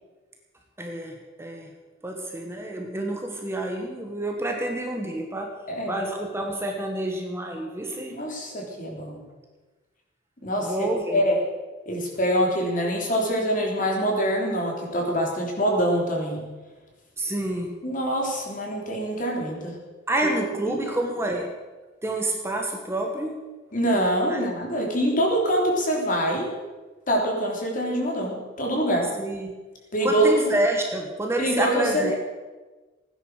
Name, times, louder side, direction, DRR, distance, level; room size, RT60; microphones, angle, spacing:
voice 1, 0.8-1.7 2.0-5.5 5.9-8.2 10.6-11.2 17.2-17.8 20.1-21.5 22.0-23.5 24.3-24.5 29.2-29.5 30.0-32.1, right 1 dB, 15° right, 1 dB, 1.5 m, -28 dB
voice 2, 8.2-9.2 10.4-10.9 11.1-11.4 11.9-16.4 17.8-19.8 20.2-20.4 20.7-20.8 23.7-26.5 27.1-29.1 29.9-30.4 31.4-32.1, equal, 40° left, 0 dB, 3.5 m, -24 dB
16.5 x 10.0 x 6.5 m, 1.3 s
head